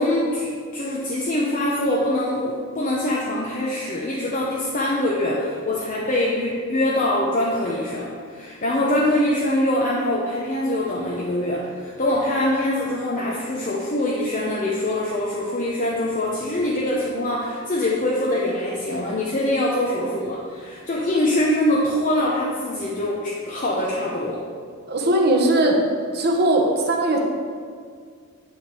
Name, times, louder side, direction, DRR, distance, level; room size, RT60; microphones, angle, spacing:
voice 1, 0.0-24.4, left 1 dB, 35° left, -4 dB, 0.7 m, -23 dB
voice 2, 24.9-25.8 26.1-27.2, right 1 dB, 50° right, 1 dB, 1.0 m, -19 dB
10.5 x 3.5 x 4.8 m, 2.1 s
head